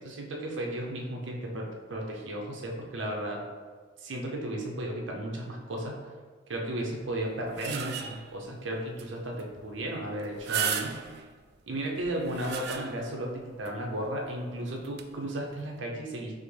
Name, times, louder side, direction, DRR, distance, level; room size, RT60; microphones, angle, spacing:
voice 1, 0.0-3.4 4.0-6.0 6.5-11.0 11.7-16.3, right 1 dB, 75° right, 0 dB, 0.7 m, -34 dB
sound 1, 7.2-8.4 9.0-9.1 9.4-9.5 10.2-11.3 12.0-13.2 13.7-13.8 14.8-15.0, right 8 dB, 60° right, 0.3 m, -34 dB
5.5 x 2.0 x 3.3 m, 1.5 s
head